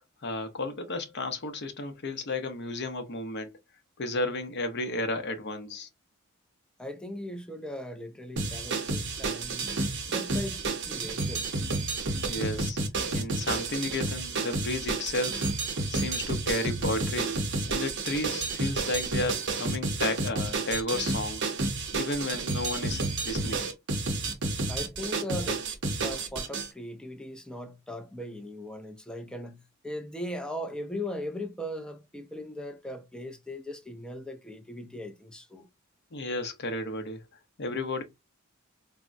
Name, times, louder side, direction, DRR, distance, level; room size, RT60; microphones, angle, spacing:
voice 1, 0.2-3.5 4.0-5.9 12.3-12.8 13.1-15.5 15.9-17.4 17.7-21.5 21.9-23.7 36.1-37.2 37.6-38.0, left 2 dB, 55° left, 0.6 m, -33 dB
voice 2, 6.8-9.8 10.1-11.6 24.7-35.7, left 1 dB, 5° left, 0.3 m, -39 dB
sound 1, 8.4-26.7, right 3 dB, 55° right, 0.7 m, -30 dB
3.4 x 2.0 x 2.4 m
head